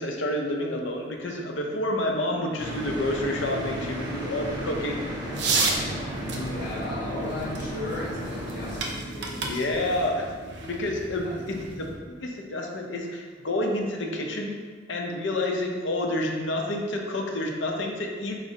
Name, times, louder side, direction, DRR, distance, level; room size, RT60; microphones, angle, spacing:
voice 1, 0.0-5.0 9.3-10.3 10.7-11.9 12.2-14.6 14.9-18.4, left 1 dB, 70° left, 1 dB, 0.6 m, -29 dB
sound 1, 2.6-8.8, equal, 20° right, 0.9 m, -34 dB
sound 2, 5.3-11.9, right 3 dB, 65° right, 0.6 m, -32 dB
voice 2, 6.2-9.9 11.2-11.3, left 1 dB, 55° left, -6 dB, 1.3 m, -35 dB
4.4 x 4.0 x 2.8 m, 1.5 s
head